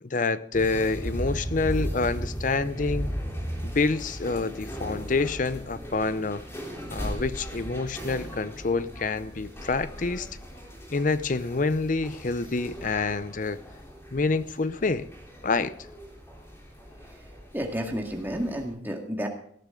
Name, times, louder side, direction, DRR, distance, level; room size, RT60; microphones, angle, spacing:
voice 1, 0.0-3.1 3.6-6.4 6.9-10.3 10.9-13.6 14.1-15.1 15.4-15.7, left 3 dB, 45° left, 14 dB, 0.7 m, -27 dB
sound 1, 0.5-18.7, equal, 15° left, 3.5 m, -37 dB
voice 2, 17.5-19.3, equal, 10° right, 2 dB, 2.0 m, -31 dB
18.0 x 12.5 x 3.8 m, 0.62 s
head